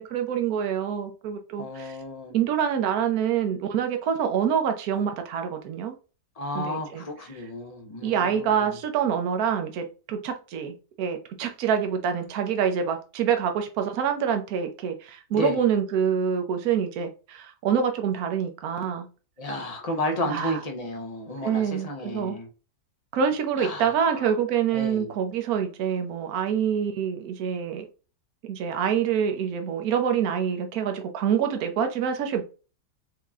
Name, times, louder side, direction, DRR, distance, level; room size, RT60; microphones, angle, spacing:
voice 1, 0.0-2.0 2.3-5.9 6.5-7.0 8.0-19.1 20.3-20.6 21.4-22.4 23.1-27.8 28.4-32.4, right 8 dB, 65° right, 1.2 m, -26 dB
voice 2, 1.6-2.3 6.4-8.7 15.3-15.6 19.4-22.5 23.6-24.3 24.7-25.1, left 1 dB, 30° left, 0.7 m, -32 dB
4.8 x 2.8 x 3.5 m
omnidirectional pair, 1.8 m